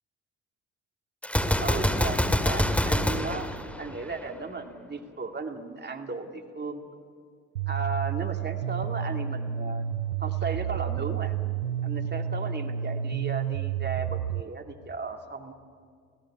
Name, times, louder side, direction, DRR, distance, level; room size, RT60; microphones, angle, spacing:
Gunshot gunfire, 1.2-4.3, left 1 dB, 5° left, 2.1 m, -26 dB
voice 1, 1.6-3.5 3.8-6.8 7.7-9.8 10.2-11.3 11.8-15.5, right 3 dB, 25° right, 4 dB, 2.5 m, -35 dB
sound 1, 7.6-14.4, right 9 dB, 85° right, 0.6 m, -30 dB
27.0 x 17.5 x 8.6 m, 2.2 s
figure-of-eight pair, 50°, 43 cm